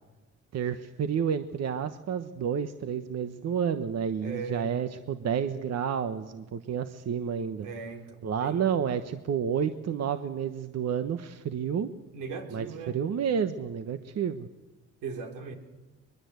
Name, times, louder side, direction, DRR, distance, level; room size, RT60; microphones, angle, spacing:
voice 1, 0.5-7.7 8.2-11.9 12.5-14.5, right 7 dB, 60° right, 9 dB, 1.2 m, -30 dB
voice 2, 4.2-4.7 7.6-8.7 12.1-13.0 15.0-15.5, right 5 dB, 85° right, 4 dB, 3.7 m, -38 dB
22.5 x 22.0 x 8.1 m, 1.2 s
cardioid pair, 90°, 30 cm